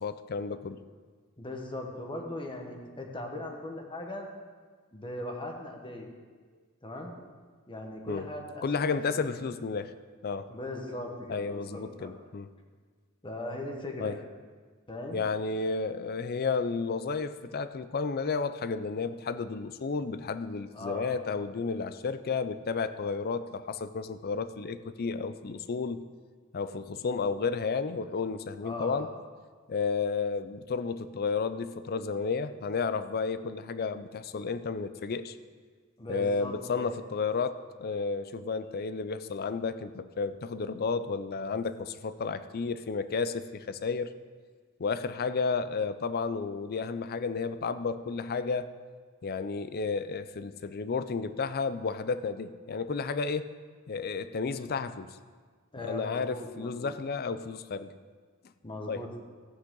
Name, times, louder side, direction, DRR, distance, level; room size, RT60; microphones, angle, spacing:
voice 1, 0.0-0.8 8.1-8.3 8.6-9.9 10.2-10.5 11.3-12.5 14.0-14.1 15.1-26.0 26.5-29.1 29.7-35.4 36.1-44.1 44.8-48.7 49.2-53.5 53.9-55.2 55.8-57.9 58.9-59.2, left 4 dB, 45° left, 13 dB, 0.5 m, -32 dB
voice 2, 1.4-4.3 4.9-6.1 6.8-7.1 7.7-9.3 10.5-12.1 13.2-14.2 14.9-15.2 20.7-21.1 28.6-29.2 36.0-36.9 55.7-57.0 58.6-59.2, left 1 dB, 25° left, 2 dB, 1.3 m, -39 dB
14.5 x 8.8 x 3.9 m, 1.5 s
head